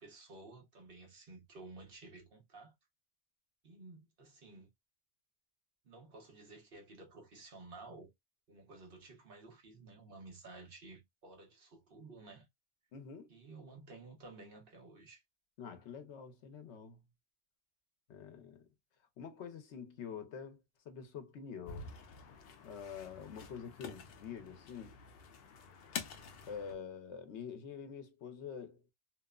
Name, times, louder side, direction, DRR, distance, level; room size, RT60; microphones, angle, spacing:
voice 1, 0.0-2.7 3.6-4.7 5.8-8.1 8.5-12.5 13.3-15.2, right 3 dB, 55° right, 1.1 m, -53 dB
voice 2, 12.9-13.3 15.6-17.0 18.1-18.7 19.2-21.9 22.6-25.0 26.5-28.9, left 7 dB, 85° left, 1.0 m, -46 dB
sound 1, 21.7-26.7, left 6 dB, 65° left, 0.7 m, -48 dB
2.9 x 2.1 x 2.2 m
omnidirectional pair, 1.1 m